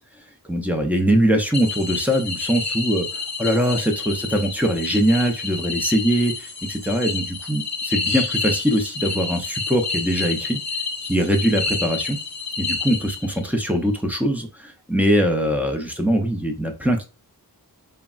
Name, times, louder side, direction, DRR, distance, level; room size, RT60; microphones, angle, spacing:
voice 1, 0.5-6.3 6.7-10.6 11.0-12.2 12.6-17.0, equal, 5° right, 3 dB, 0.5 m, -22 dB
sound 1, 1.5-13.5, left 4 dB, 45° left, 0.7 m, -29 dB
3.3 x 2.0 x 2.3 m, 0.32 s
wide cardioid pair, 45°, 40 cm